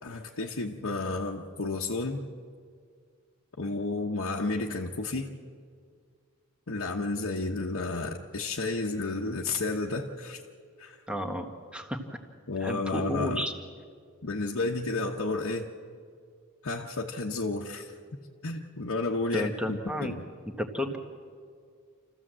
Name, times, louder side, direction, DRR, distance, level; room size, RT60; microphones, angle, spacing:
voice 1, 0.0-2.2 3.6-5.3 6.7-10.4 10.8-11.0 12.5-13.4 14.2-15.7 16.6-17.9 18.4-20.2, left 3 dB, 85° left, -2 dB, 1.1 m, -31 dB
voice 2, 11.1-11.5 11.7-12.0 12.6-13.5 19.3-20.1 20.6-21.0, equal, 5° right, 5 dB, 1.4 m, -31 dB
27.5 x 14.5 x 7.5 m, 2.1 s
head